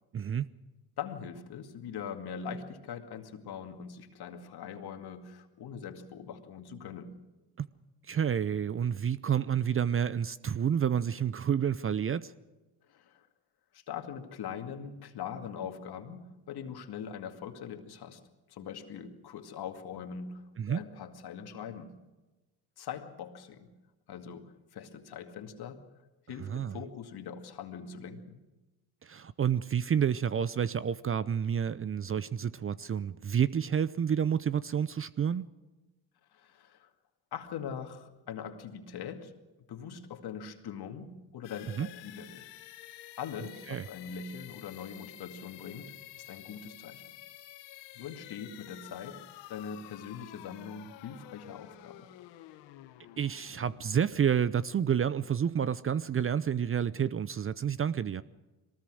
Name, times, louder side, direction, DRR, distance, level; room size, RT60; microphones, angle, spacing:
voice 1, 0.1-0.5 7.6-7.7 8.1-12.3 20.6-20.8 26.4-26.8 29.0-35.5 41.7-41.9 43.7-43.8 53.2-58.2, right 8 dB, 30° right, 0.6 m, -29 dB
voice 2, 1.0-7.2 12.9-13.3 13.7-18.2 18.5-21.9 22.8-23.7 24.1-25.8 26.3-28.4 36.3-36.9 37.3-39.3 39.7-42.5 43.2-47.0 48.0-49.2 49.5-52.1, left 7 dB, 60° left, 2.3 m, -42 dB
sound 1, 41.4-55.1, left 14 dB, 75° left, 1.4 m, -51 dB
22.5 x 19.0 x 6.4 m
supercardioid pair, 70°, 44 cm